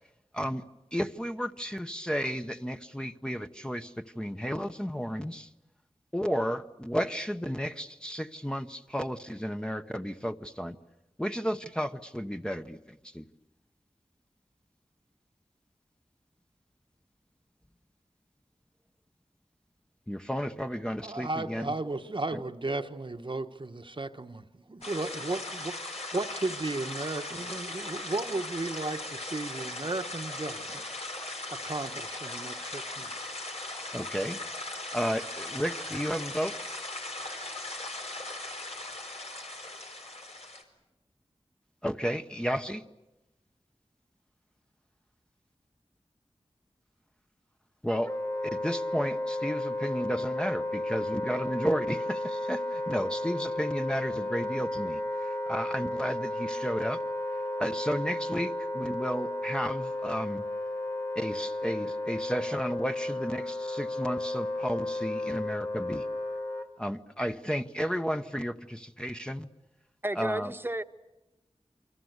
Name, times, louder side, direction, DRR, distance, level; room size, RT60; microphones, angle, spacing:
voice 1, 0.9-5.5 6.1-10.8 11.2-13.3 20.1-21.7 22.3-22.4 33.9-34.4 34.9-36.6 41.8-42.8 47.8-48.1 48.5-57.0 57.6-60.4 61.1-66.0 66.8-69.5 70.1-70.5, equal, 10° left, 6 dB, 1.0 m, -33 dB
voice 2, 21.0-30.8 31.5-33.3 33.9-34.0, right 2 dB, 50° right, 7 dB, 1.1 m, -35 dB
sound 1, 24.8-40.6, left 2 dB, 80° left, 4.4 m, -39 dB
Wind instrument woodwind instrument, 48.0-66.7, left 1 dB, 30° left, 2.4 m, -33 dB
voice 3, 70.0-70.8, right 1 dB, 20° right, 9 dB, 1.2 m, -32 dB
28.5 x 24.5 x 8.1 m, 0.99 s
wide cardioid pair, 65°, 11 cm